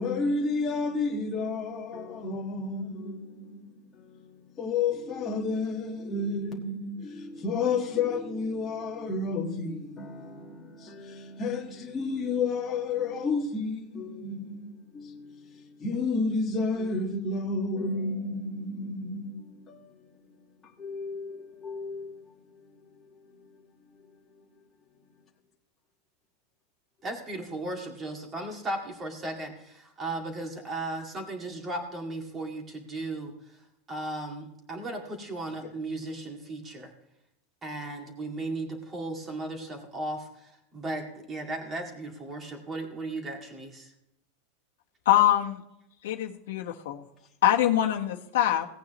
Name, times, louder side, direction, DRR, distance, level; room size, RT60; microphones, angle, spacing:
voice 1, 0.0-20.0 20.6-22.2 22.5-23.6 23.9-24.5, left 3 dB, 15° left, 1.6 m, -32 dB
voice 2, 27.0-36.9 37.6-43.9, right 2 dB, 15° right, 2.0 m, -36 dB
voice 3, 45.0-45.6 46.0-47.0 47.4-48.7, left 12 dB, 75° left, 1.3 m, -24 dB
18.0 x 9.0 x 3.1 m
supercardioid pair, 175°, 0 cm